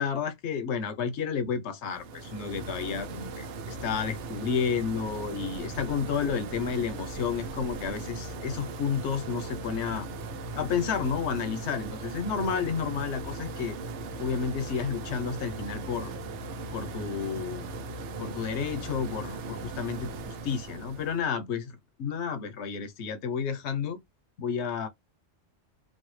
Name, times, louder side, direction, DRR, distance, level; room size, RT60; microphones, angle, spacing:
voice 1, 0.0-10.1 10.6-13.8 14.2-16.1 16.7-17.7 18.2-24.0 24.4-24.9, left 6 dB, 75° left, 1.0 m, -31 dB
sound 1, 1.8-21.2, right 2 dB, 85° right, 0.9 m, -38 dB
4.1 x 2.2 x 3.1 m
omnidirectional pair, 1.2 m